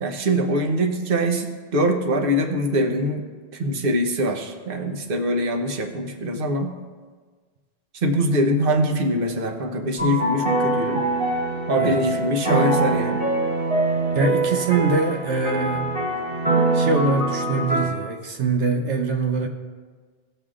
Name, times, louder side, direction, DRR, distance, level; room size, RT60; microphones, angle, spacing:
voice 1, 0.0-3.2 3.5-6.8 8.0-11.0 11.7-13.2, equal, 55° right, 3 dB, 1.1 m, -23 dB
sound 1, 10.0-17.9, right 2 dB, 30° right, 2.6 m, -23 dB
voice 2, 14.1-15.9 16.7-19.5, right 3 dB, 80° right, 3 dB, 1.1 m, -23 dB
19.0 x 7.2 x 2.5 m, 1.5 s
omnidirectional pair, 1.2 m